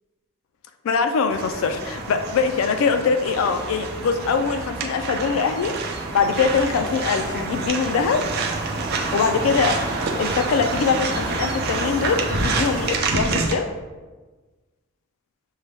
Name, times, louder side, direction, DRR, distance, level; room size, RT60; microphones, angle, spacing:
voice 1, 0.8-5.8 6.1-8.2 8.9-9.8 10.2-13.7, left 5 dB, 70° left, 7 dB, 0.3 m, -22 dB
sound 1, 1.3-13.5, right 3 dB, 45° right, 0.5 m, -27 dB
6.3 x 2.2 x 3.4 m, 1.3 s
head